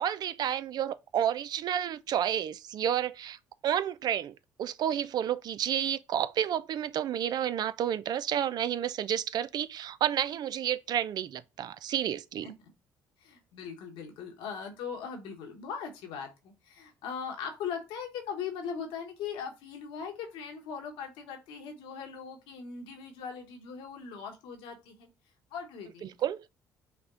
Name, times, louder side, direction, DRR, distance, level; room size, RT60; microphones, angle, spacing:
voice 1, 0.0-3.4 3.6-4.3 4.6-12.5 26.0-26.4, right 10 dB, 55° right, 0.4 m, -30 dB
voice 2, 13.2-25.1 25.5-26.1, left 6 dB, 80° left, 1.2 m, -40 dB
5.8 x 2.1 x 3.7 m
hypercardioid pair, 60°, 8 cm